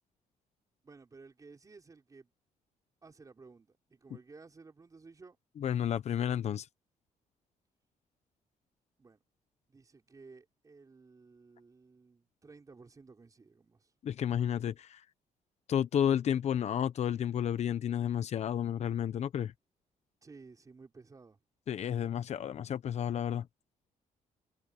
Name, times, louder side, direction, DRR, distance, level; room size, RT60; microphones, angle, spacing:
voice 1, 0.8-2.3 3.0-5.4 9.0-9.2 9.7-13.9 20.2-21.4, right 4 dB, 25° right, 5.4 m, -55 dB
voice 2, 5.6-6.7 14.0-15.0 15.7-19.5 21.7-23.5, left 9 dB, 55° left, 0.9 m, -31 dB
cardioid pair, 125°, 14 cm